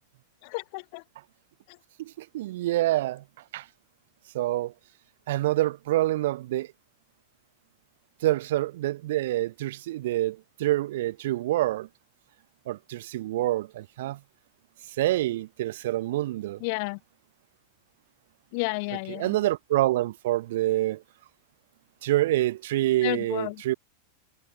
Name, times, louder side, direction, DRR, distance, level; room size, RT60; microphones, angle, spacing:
voice 1, 0.4-1.0 1.7-1.8 16.6-17.0 18.5-19.4 23.0-23.6, left 31 dB, 45° left, 0.3 m, -31 dB
voice 2, 2.0-3.2 3.5-3.6 4.3-4.7 5.3-6.7 8.2-11.9 12.7-14.2 15.0-16.6 19.1-21.0 22.0-23.7, right 15 dB, 55° right, 0.6 m, -26 dB
figure-of-eight pair, 90°, 0 cm